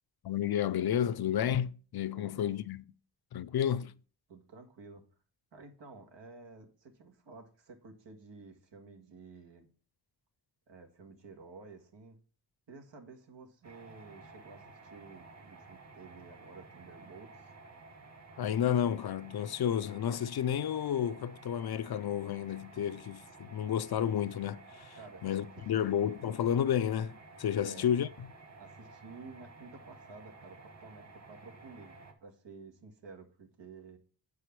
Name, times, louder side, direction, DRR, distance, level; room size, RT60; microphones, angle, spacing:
voice 1, 0.2-2.8 3.3-3.9 18.4-28.1, left 9 dB, 65° left, 0.5 m, -31 dB
voice 2, 2.1-2.6 3.8-3.9 4.3-5.0 5.5-9.7 10.7-12.2 12.7-17.5 25.0-25.2 25.6-25.8 27.6-27.9 28.6-34.0, right 4 dB, 90° right, 1.9 m, -52 dB
sound 1, 13.6-32.1, right 3 dB, 40° right, 1.6 m, -53 dB
8.2 x 4.8 x 6.0 m
wide cardioid pair, 140°, 42 cm